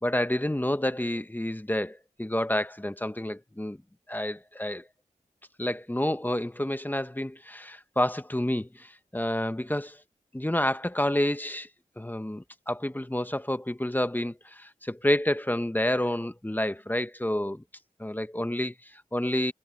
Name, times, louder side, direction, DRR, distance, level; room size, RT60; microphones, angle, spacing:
voice 1, 0.0-3.8 4.1-4.9 5.6-10.0 10.3-11.7 12.0-17.6 18.0-19.5, left 1 dB, 15° left, 1.1 m, -29 dB
cardioid pair, 50°, 14 cm